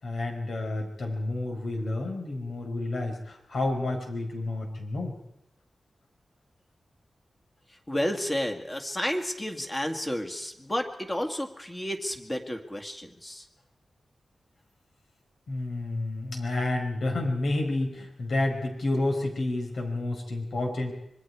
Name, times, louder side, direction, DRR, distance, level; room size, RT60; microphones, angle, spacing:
voice 1, 0.0-5.1 15.5-20.9, left 2 dB, 75° left, 2 dB, 5.1 m, -30 dB
voice 2, 7.9-13.4, left 1 dB, 20° left, 4 dB, 2.2 m, -31 dB
26.0 x 22.5 x 4.8 m, 0.79 s
wide cardioid pair, 135°, 0 cm